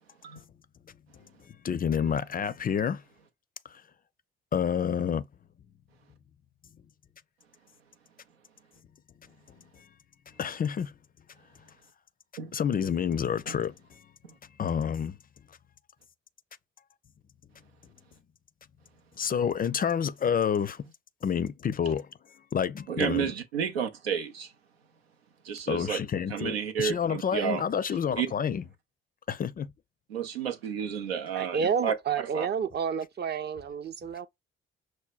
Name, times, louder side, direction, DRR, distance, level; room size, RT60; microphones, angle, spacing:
voice 1, 1.6-3.0 3.7-3.8 4.5-5.2 10.4-10.9 12.5-13.7 14.6-15.2 19.2-20.8 21.2-22.1 22.5-23.3 25.7-28.6 29.3-29.7, left 7 dB, 30° left, 0.4 m, -28 dB
voice 2, 22.9-24.5 25.4-26.0 26.3-27.6 28.2-28.3 30.1-31.9 32.3-32.5, right 7 dB, 90° right, 0.6 m, -31 dB
voice 3, 31.3-34.3, right 7 dB, 35° right, 0.6 m, -30 dB
6.2 x 2.1 x 2.3 m
hypercardioid pair, 45°, 30 cm